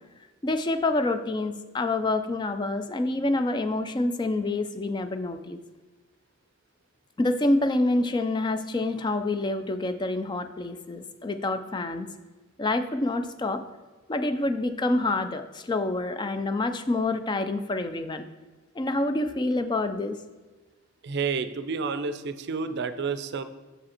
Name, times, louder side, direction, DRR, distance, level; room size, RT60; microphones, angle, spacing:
voice 1, 0.4-5.6 7.2-12.1 12.6-13.6 14.1-18.2 18.8-20.2, left 2 dB, 20° left, 9 dB, 0.4 m, -27 dB
voice 2, 21.0-23.4, right 5 dB, 55° right, 11 dB, 0.5 m, -30 dB
6.6 x 5.1 x 4.2 m, 1.3 s
head